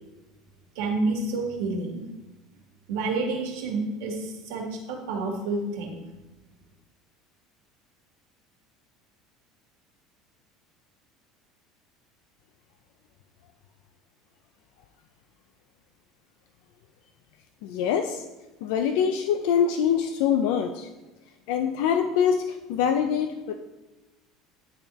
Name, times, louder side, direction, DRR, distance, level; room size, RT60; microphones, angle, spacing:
voice 1, 0.7-2.0 2.9-6.0, right 3 dB, 80° right, 0 dB, 1.5 m, -29 dB
voice 2, 17.6-18.2 18.6-20.9 21.5-23.5, left 8 dB, 75° left, 6 dB, 0.4 m, -24 dB
9.9 x 3.5 x 3.0 m, 1.0 s
cardioid pair, 160°, 0 cm